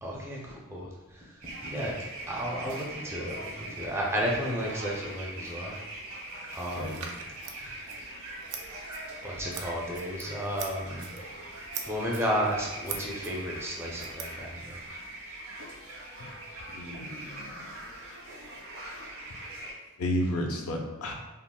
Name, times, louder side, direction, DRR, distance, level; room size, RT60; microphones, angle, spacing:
voice 1, 0.0-5.8 6.5-7.1 7.4-8.1 9.2-11.1 11.9-14.8, equal, 10° right, -3 dB, 0.4 m, -33 dB
sound 1, 1.4-19.7, right 1 dB, 70° right, 0.9 m, -42 dB
Scissors, 6.9-14.9, right 6 dB, 85° right, 0.4 m, -44 dB
voice 2, 16.7-17.7 20.0-21.1, left 1 dB, 75° left, 1 dB, 0.5 m, -32 dB
3.6 x 2.0 x 2.3 m, 1.1 s
head